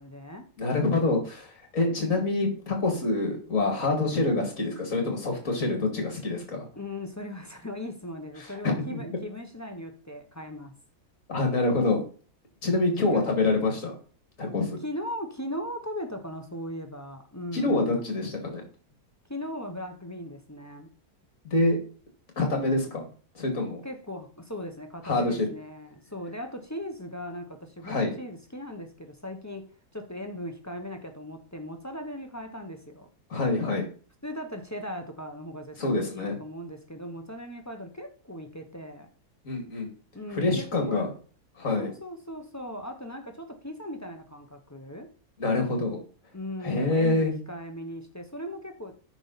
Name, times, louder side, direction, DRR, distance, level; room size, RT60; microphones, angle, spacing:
voice 1, 0.0-0.5 5.8-5.9 6.8-10.7 12.9-13.3 14.8-17.9 19.3-20.9 23.8-29.7 29.9-33.1 34.2-39.1 40.1-41.1 41.8-45.1 46.3-48.9, left 1 dB, 15° left, 0.7 m, -38 dB
voice 2, 0.6-1.5 1.7-6.7 8.6-9.0 11.3-12.0 12.6-14.0 14.4-14.7 17.5-18.6 21.4-21.8 22.4-23.1 23.3-23.8 25.0-25.5 27.8-28.1 33.3-33.9 35.8-36.4 39.4-39.9 40.3-41.1 41.6-41.9 45.4-46.0 46.6-47.3, left 2 dB, 55° left, 2.6 m, -26 dB
9.1 x 5.8 x 4.1 m
omnidirectional pair, 1.6 m